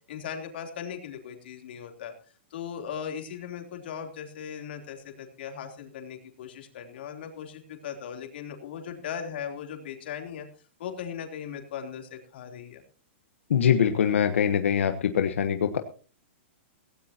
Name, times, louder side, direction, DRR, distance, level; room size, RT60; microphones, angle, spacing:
voice 1, 0.1-2.1 2.5-10.5 10.8-12.8 13.6-13.7, left 8 dB, 55° left, 3 dB, 3.4 m, -38 dB
voice 2, 13.5-15.8, left 8 dB, 85° left, 6 dB, 1.3 m, -23 dB
17.0 x 17.0 x 2.9 m, 0.39 s
hypercardioid pair, 170°, 7 cm